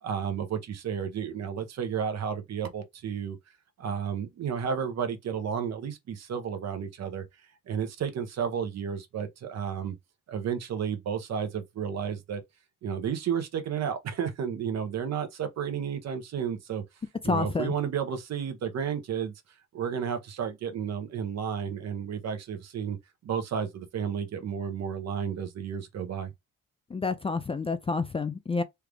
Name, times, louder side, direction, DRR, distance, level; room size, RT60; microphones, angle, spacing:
voice 1, 0.0-3.4 3.8-7.2 7.7-10.0 10.3-12.4 12.8-16.8 17.2-19.3 19.7-23.0 23.2-26.3, right 7 dB, 60° right, 0.8 m, -32 dB
voice 2, 17.3-17.7 26.9-28.6, left 4 dB, 20° left, 0.3 m, -29 dB
3.3 x 2.4 x 3.3 m
cardioid pair, 90°, 30 cm